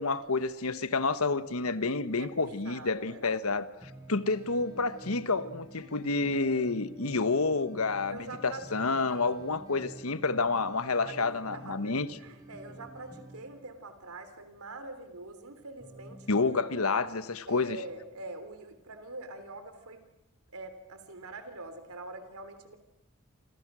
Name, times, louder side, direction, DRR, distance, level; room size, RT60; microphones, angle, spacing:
voice 1, 0.0-3.7 4.1-8.2 8.4-12.1 16.3-17.8, left 3 dB, 85° left, 1.3 m, -29 dB
voice 2, 2.2-3.3 8.1-9.4 11.0-16.7 17.5-20.0 20.5-22.8, right 2 dB, 90° right, 3.4 m, -45 dB
sound 1, 3.8-13.4 15.8-16.5, right 1 dB, 15° right, 5.8 m, -49 dB
28.5 x 26.5 x 6.2 m
head